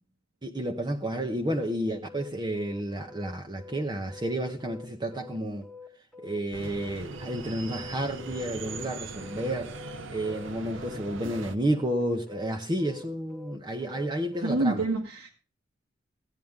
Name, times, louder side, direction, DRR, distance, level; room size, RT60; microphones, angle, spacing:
voice 1, 0.4-5.7 6.2-9.8 10.1-14.8, right 1 dB, 20° right, 0.9 m, -31 dB
sound 1, 2.0-14.6, left 5 dB, 5° left, 1.5 m, -47 dB
sound 2, 6.5-11.6, right 3 dB, 70° right, 0.9 m, -40 dB
voice 2, 14.4-15.3, right 2 dB, 85° right, 1.8 m, -27 dB
16.0 x 9.3 x 3.6 m
head